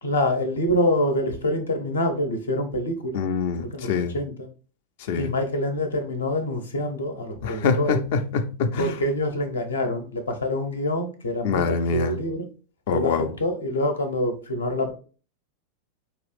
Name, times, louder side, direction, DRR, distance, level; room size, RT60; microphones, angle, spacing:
voice 1, 0.0-3.2 3.7-3.9 4.1-4.5 5.2-8.0 8.8-12.5 12.9-13.1 13.4-14.9, left 1 dB, 70° left, 0.9 m, -26 dB
voice 2, 3.1-4.1 5.0-5.3 7.4-9.0 11.4-12.2 12.9-13.3, left 5 dB, 50° left, 0.6 m, -25 dB
4.9 x 3.0 x 3.3 m
figure-of-eight pair, 90°, 0 cm